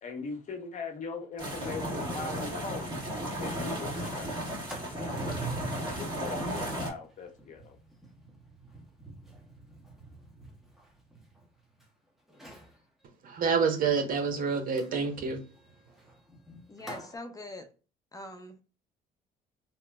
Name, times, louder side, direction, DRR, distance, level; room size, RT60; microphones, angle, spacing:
voice 1, 0.0-4.5 4.9-5.3 5.9-7.8, left 4 dB, 50° left, 0.8 m, -41 dB
sound 1, 1.4-6.9, equal, 25° right, 1.5 m, -34 dB
Sliding door, 4.4-11.8 12.3-12.8 14.8-17.2, right 3 dB, ahead, 0.9 m, -45 dB
voice 2, 13.2-15.4, right 5 dB, 55° right, 0.8 m, -28 dB
voice 3, 16.7-17.7 18.1-18.6, left 2 dB, 20° left, 0.5 m, -43 dB
2.9 x 2.0 x 3.4 m
cardioid pair, 110°, 17 cm